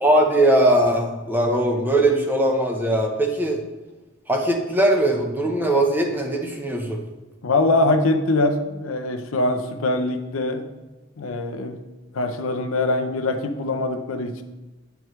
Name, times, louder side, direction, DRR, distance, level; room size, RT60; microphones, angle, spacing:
voice 1, 0.0-3.6 4.3-7.0, right 1 dB, 10° right, 2 dB, 0.8 m, -20 dB
voice 2, 7.4-10.6 11.2-11.8 12.1-14.4, left 2 dB, 85° left, 6 dB, 0.6 m, -23 dB
9.1 x 4.6 x 3.1 m, 1.2 s
head